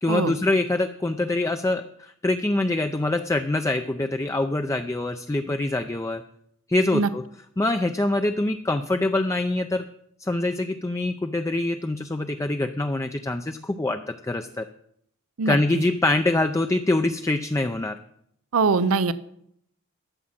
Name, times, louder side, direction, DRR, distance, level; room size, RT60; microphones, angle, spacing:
voice 1, 0.0-6.2 6.7-7.2 7.6-9.9 10.2-14.7 15.5-18.0, left 2 dB, 15° left, 7 dB, 0.4 m, -24 dB
voice 2, 18.5-19.1, right 4 dB, 75° right, 15 dB, 0.6 m, -22 dB
12.5 x 7.4 x 7.3 m, 0.72 s
head